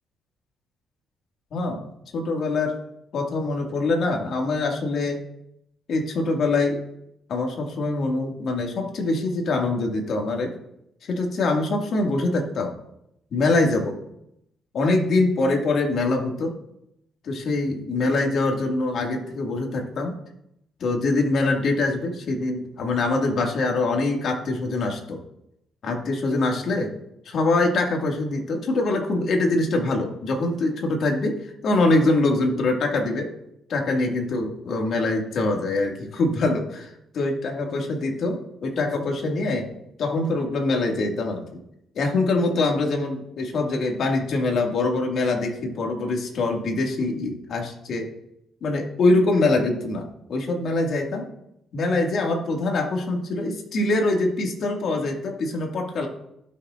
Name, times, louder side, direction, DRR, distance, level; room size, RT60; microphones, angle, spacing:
voice 1, 1.5-1.9 2.1-2.8 3.1-5.2 5.9-6.8 7.3-10.5 11.1-12.7 13.3-14.0 14.7-16.5 17.2-20.2 20.8-25.2 25.8-26.9 27.3-33.3 33.7-39.7 40.0-41.6 42.0-48.1 48.6-51.2 51.7-56.1, left 2 dB, 65° left, 1 dB, 2.0 m, -24 dB
16.0 x 6.6 x 2.5 m, 0.79 s
cardioid pair, 90°, 0 cm